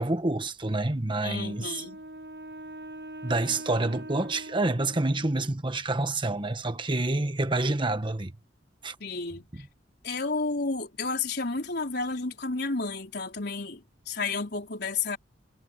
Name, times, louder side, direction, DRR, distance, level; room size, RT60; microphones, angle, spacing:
voice 1, 0.0-1.7 3.2-8.3 8.8-8.9, right 2 dB, 25° right, 1.3 m, -28 dB
voice 2, 1.2-2.0 9.0-9.6 10.0-15.2, left 3 dB, 60° left, 4.3 m, -31 dB
Wind instrument woodwind instrument, 1.3-5.5, right 1 dB, 70° right, 4.4 m, -43 dB
head